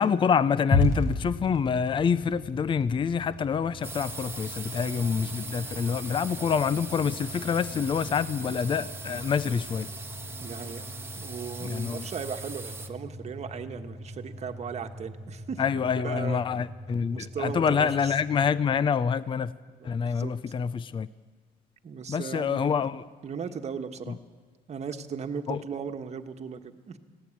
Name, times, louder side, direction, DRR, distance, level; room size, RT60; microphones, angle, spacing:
voice 1, 0.0-9.9 11.6-12.1 15.6-19.5 19.8-21.1 22.1-23.0 24.1-24.2 25.5-25.6, left 6 dB, 30° left, 17 dB, 0.5 m, -26 dB
sound 1, 0.7-18.9, left 2 dB, 55° left, 5.3 m, -36 dB
sound 2, 3.8-12.9, right 3 dB, 15° right, 1.5 m, -40 dB
voice 2, 10.4-10.9 11.1-16.7 17.1-18.1 19.7-19.8 20.0-20.4 21.8-22.9 23.2-24.2 24.7-27.0, right 6 dB, 40° right, 6 dB, 1.5 m, -37 dB
21.0 x 16.0 x 8.6 m, 1.4 s
cardioid pair, 110°, 17 cm